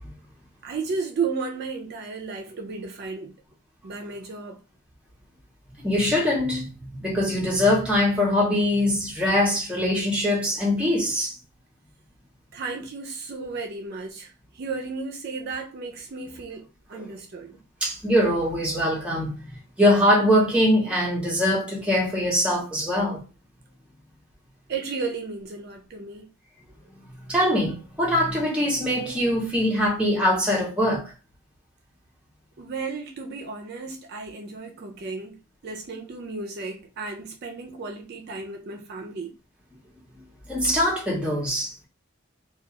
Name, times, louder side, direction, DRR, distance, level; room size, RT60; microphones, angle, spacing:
voice 1, 0.6-3.4 3.8-4.6 12.5-17.6 24.7-26.3 32.6-39.3, right 4 dB, 50° right, 0.4 m, -34 dB
voice 2, 5.8-11.3 16.9-17.1 17.8-19.3 19.8-23.2 27.3-31.1 40.5-41.9, left 1 dB, 5° right, 0.7 m, -22 dB
2.3 x 2.2 x 2.8 m
head